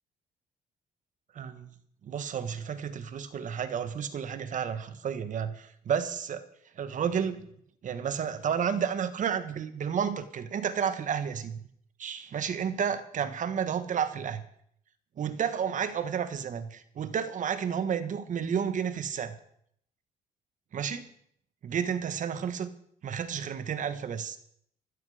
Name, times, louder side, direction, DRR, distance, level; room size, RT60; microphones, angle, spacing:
voice 1, 1.3-1.7 2.0-6.4 6.8-7.4 7.8-11.6 12.0-14.4 15.2-19.4 20.7-21.0 21.6-22.7 23.0-24.4, right 7 dB, 50° right, 12 dB, 1.5 m, -31 dB
15.0 x 13.5 x 5.1 m, 0.66 s
cardioid pair, 105°, 16 cm